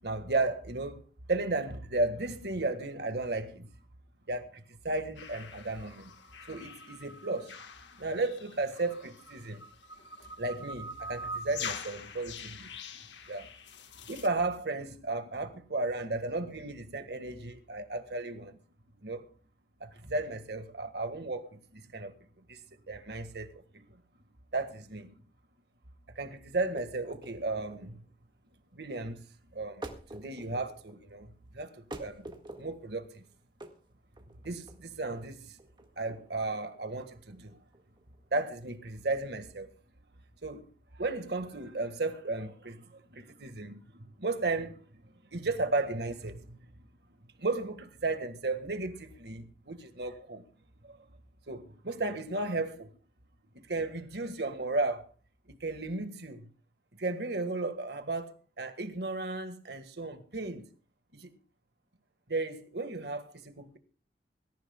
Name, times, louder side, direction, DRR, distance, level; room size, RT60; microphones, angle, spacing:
voice 1, 0.0-3.7 4.3-6.1 6.5-7.6 7.9-9.6 10.4-12.7 13.3-13.5 14.1-18.6 19.0-19.3 19.8-22.2 22.5-22.6 22.9-24.0 24.5-25.2 26.2-28.1 28.7-29.3 29.5-32.3 32.6-33.2 34.4-35.6 36.0-37.6 38.3-39.7 40.4-40.7 40.9-46.7 47.4-50.4 50.8-51.1 51.5-52.9 53.5-55.1 55.5-56.5 57.0-60.7 61.1-61.4 62.3-63.8, right 2 dB, 65° right, 1.7 m, -35 dB
sound 1, 5.2-14.3, left 3 dB, 85° left, 1.5 m, -44 dB
sound 2, 26.7-39.5, right 1 dB, 25° right, 1.8 m, -49 dB
24.0 x 14.5 x 2.3 m
head